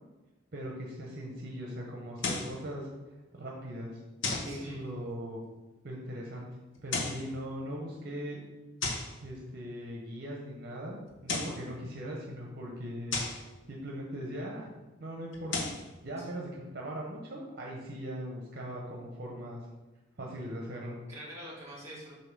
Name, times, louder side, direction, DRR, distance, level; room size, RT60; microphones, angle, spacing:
voice 1, 0.5-2.9 3.3-4.0 4.4-5.4 5.8-6.5 6.8-8.4 9.2-14.7 15.0-15.7 16.0-19.6 20.2-21.0, equal, 50° right, -1 dB, 0.8 m, -40 dB
sound 1, 2.2-2.6 4.2-4.6 6.8-7.3 8.8-9.2 11.1-11.6 13.1-13.5 15.3-15.9, left 3 dB, 65° left, 0.9 m, -34 dB
voice 2, 4.4-5.1 16.2-16.3 21.1-22.2, equal, 15° right, -5 dB, 2.0 m, -46 dB
6.7 x 2.7 x 5.2 m, 1.1 s
head